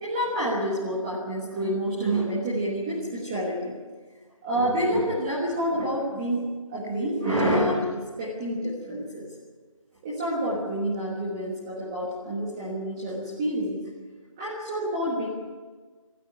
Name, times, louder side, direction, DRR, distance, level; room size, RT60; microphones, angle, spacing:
voice 1, 0.0-3.7 4.4-9.3 10.0-13.8 14.4-15.3, right 1 dB, 10° right, -6 dB, 1.4 m, -28 dB
24.0 x 13.5 x 9.6 m, 1.4 s
figure-of-eight pair, 170°, 18 cm